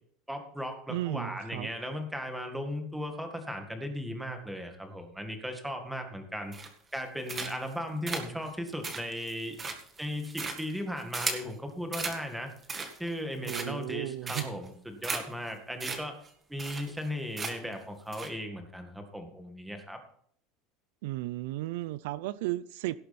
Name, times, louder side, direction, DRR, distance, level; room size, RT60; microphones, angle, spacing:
voice 1, 0.3-6.5 6.9-9.6 10.0-12.5 13.0-16.2 16.5-20.0, equal, 5° right, 1.9 m, -37 dB
voice 2, 0.9-1.7 13.5-14.5 21.0-23.0, right 17 dB, 80° right, 0.5 m, -34 dB
sound 1, 6.5-6.9 7.3-7.7 8.1-11.5 11.9-12.2 12.6-13.1 13.4-13.9 14.3-14.7 15.0-15.2 15.5-15.6 15.8-16.0 16.2-16.3 16.6-17.1 17.4-17.7 18.1-18.3, right 4 dB, 20° right, 1.8 m, -36 dB
17.5 x 7.7 x 4.3 m
cardioid pair, 150°, 0 cm